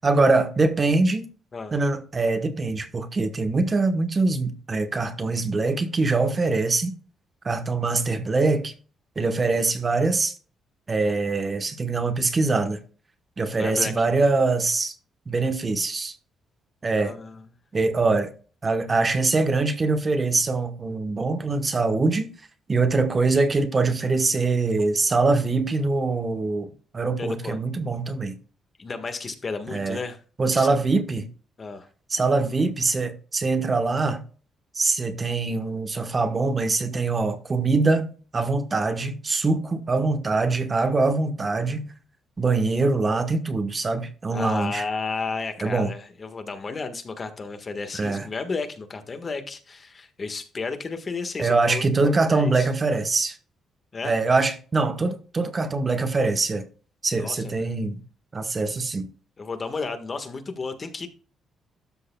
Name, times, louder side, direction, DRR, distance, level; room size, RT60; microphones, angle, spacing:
voice 1, 0.0-1.2 1.7-6.9 7.4-8.7 9.2-10.3 10.9-12.8 13.4-14.9 15.3-16.2 16.8-17.1 17.7-18.3 18.6-22.3 22.7-28.4 29.7-30.0 30.4-31.3 32.1-34.2 34.7-41.8 42.4-44.8 45.6-45.9 48.0-48.3 51.4-53.4 54.0-56.7 57.0-58.0 58.3-59.1, right 3 dB, 30° right, 1.1 m, -23 dB
voice 2, 13.6-14.0 16.9-17.5 27.2-27.6 28.8-30.2 30.5-30.8 31.6-31.9 44.3-52.7 53.9-54.1 57.2-57.6 59.4-61.1, left 4 dB, 35° left, 1.5 m, -33 dB
12.5 x 6.5 x 2.3 m
cardioid pair, 90°, 0 cm